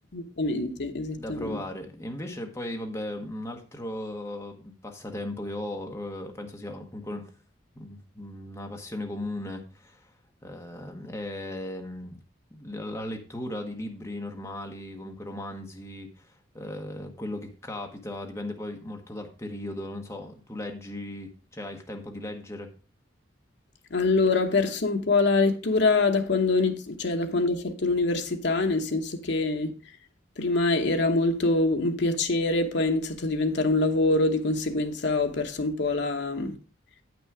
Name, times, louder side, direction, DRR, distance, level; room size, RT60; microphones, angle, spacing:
voice 1, 0.1-1.6 23.9-29.7 30.4-36.5, left 3 dB, 60° left, 1.0 m, -25 dB
voice 2, 1.2-7.3 7.7-10.1 10.4-12.2 12.5-22.7, left 1 dB, 15° left, 1.1 m, -37 dB
8.4 x 6.1 x 4.7 m
head